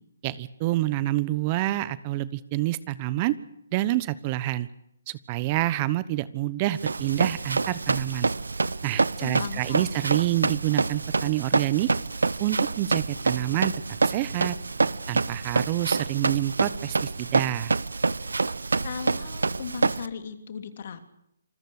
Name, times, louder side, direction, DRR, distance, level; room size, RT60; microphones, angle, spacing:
voice 1, 0.2-3.4 3.7-4.7 5.1-8.3 8.8-11.9 12.4-13.7 14.0-14.5 15.1-17.7, right 16 dB, 30° right, 18 dB, 1.0 m, -27 dB
Run, 6.8-20.1, right 3 dB, 85° right, 0.8 m, -27 dB
voice 2, 9.2-10.2 18.8-21.0, left 6 dB, 55° left, 9 dB, 3.0 m, -37 dB
27.5 x 21.5 x 6.6 m, 0.75 s
hypercardioid pair, 145°, 0 cm